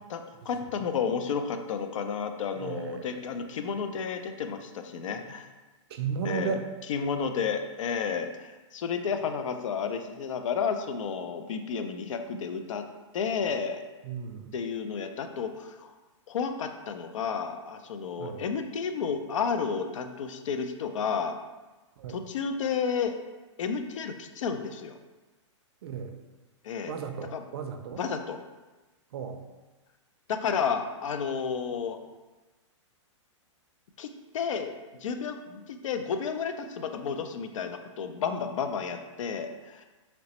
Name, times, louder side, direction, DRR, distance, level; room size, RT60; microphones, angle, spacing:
voice 1, 0.1-5.5 6.2-6.5 6.9-12.8 13.1-13.8 14.5-15.9 16.3-21.4 22.1-23.1 23.6-24.9 26.6-26.9 27.3-27.4 28.0-28.4 30.3-32.0 34.0-34.7 35.0-39.8, left 6 dB, 80° left, 7 dB, 0.4 m, -31 dB
voice 2, 2.5-3.2 5.9-6.7 9.0-9.1 14.0-14.5 18.2-18.4 22.0-22.2 25.8-26.1 26.9-28.0 29.1-29.4, right 6 dB, 55° right, 6 dB, 0.4 m, -34 dB
3.0 x 3.0 x 2.9 m, 1.2 s
hypercardioid pair, 160°, 16 cm